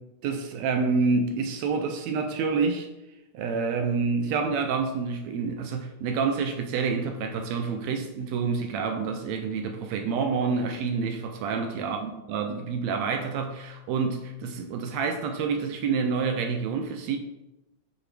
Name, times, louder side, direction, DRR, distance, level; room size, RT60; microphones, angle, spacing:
voice 1, 0.2-2.9 3.3-17.2, right 5 dB, 75° right, 1.7 m, -28 dB
7.9 x 4.9 x 3.3 m
omnidirectional pair, 3.3 m